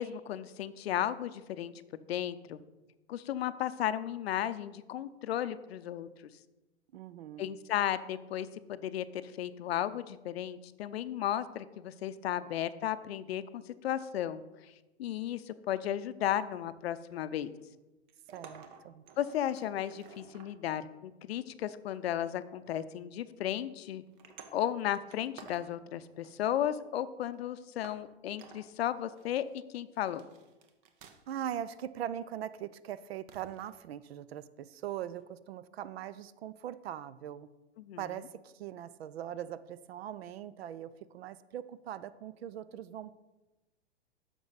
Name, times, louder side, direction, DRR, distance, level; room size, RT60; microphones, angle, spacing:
voice 1, 0.0-1.7 2.1-2.6 3.1-6.1 7.4-14.4 15.0-17.5 19.2-24.0 24.5-29.4 29.7-30.2 37.8-38.0, left 11 dB, 65° left, 14 dB, 0.6 m, -34 dB
voice 2, 6.9-7.5 18.3-19.0 31.3-37.5 38.0-43.1, right 10 dB, 65° right, 17 dB, 0.5 m, -41 dB
sound 1, 16.8-17.6 18.1-20.5 21.5-22.2 22.7-22.9 23.4-23.6 24.1-25.7 26.0-26.9 27.3-27.4 27.8-28.0 28.4-28.7 29.1-29.6 29.9-31.4 31.7-31.9 33.3-33.7 35.2-35.3, right 6 dB, 50° right, 1.0 m, -54 dB
9.1 x 6.2 x 4.0 m, 1.1 s
hypercardioid pair, 110°, 33 cm